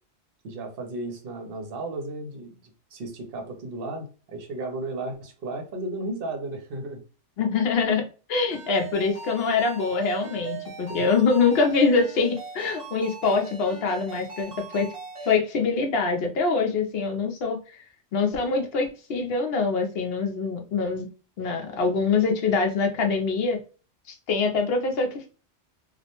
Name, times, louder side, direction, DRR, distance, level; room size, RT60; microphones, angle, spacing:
voice 1, 0.4-7.0 10.9-11.1, right 2 dB, 55° right, 4 dB, 0.8 m, -34 dB
voice 2, 7.4-8.0 8.3-14.9 15.2-17.6 18.1-21.1 21.4-23.6 24.1-25.3, left 4 dB, 65° left, 4 dB, 0.7 m, -24 dB
Ringtone, 8.5-15.4, right 5 dB, 25° right, 1.2 m, -39 dB
2.4 x 2.1 x 2.8 m, 0.36 s
omnidirectional pair, 1.2 m